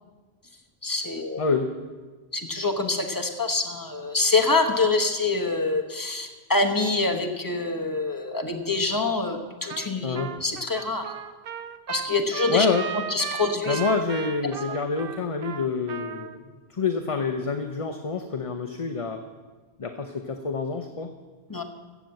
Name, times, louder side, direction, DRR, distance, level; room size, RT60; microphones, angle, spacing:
voice 1, 0.8-1.5 2.3-11.1 11.9-12.7 13.1-13.8 21.5-21.6, left 3 dB, 20° left, 4 dB, 1.2 m, -25 dB
voice 2, 1.4-1.7 10.0-10.3 12.5-12.9 13.7-19.2 19.8-21.1, left 4 dB, 35° left, 5 dB, 0.8 m, -27 dB
Trumpet, 9.7-9.9 10.1-16.4, right 8 dB, 65° right, 0.9 m, -35 dB
15.0 x 7.2 x 7.7 m, 1.3 s
omnidirectional pair, 1.0 m